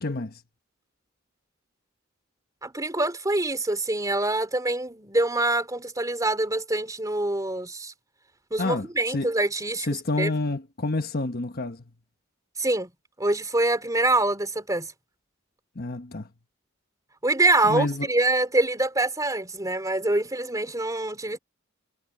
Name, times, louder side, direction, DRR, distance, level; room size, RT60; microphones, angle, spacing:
voice 1, 0.0-0.3 8.6-9.3 9.9-11.8 15.7-16.3 17.6-18.1, left 2 dB, 50° left, 1.3 m, -28 dB
voice 2, 2.6-7.9 8.5-10.4 12.6-12.9 13.2-14.9 17.2-21.4, right 2 dB, 15° right, 3.6 m, -25 dB
head